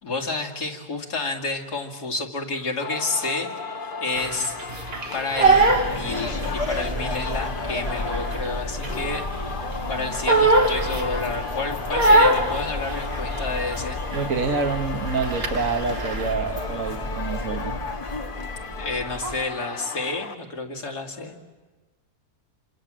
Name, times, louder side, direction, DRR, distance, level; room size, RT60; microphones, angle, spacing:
voice 1, 0.0-3.5 4.0-4.5 5.1-14.0 18.8-21.4, left 3 dB, 80° left, 1 dB, 3.0 m, -30 dB
Singing, 2.8-20.3, left 5 dB, 40° left, 0.9 m, -35 dB
Crying sobbing, 4.1-6.8 7.1-9.4 9.7-11.4 11.9-13.8 14.1-14.5 14.7-16.3, right 2 dB, 40° right, 1.8 m, -22 dB
sound 1, 5.4-19.4, left 1 dB, 25° left, 2.1 m, -32 dB
voice 2, 14.1-17.8, right 4 dB, 55° right, 3 dB, 1.8 m, -27 dB
27.5 x 26.0 x 7.5 m, 1.3 s
omnidirectional pair, 1.7 m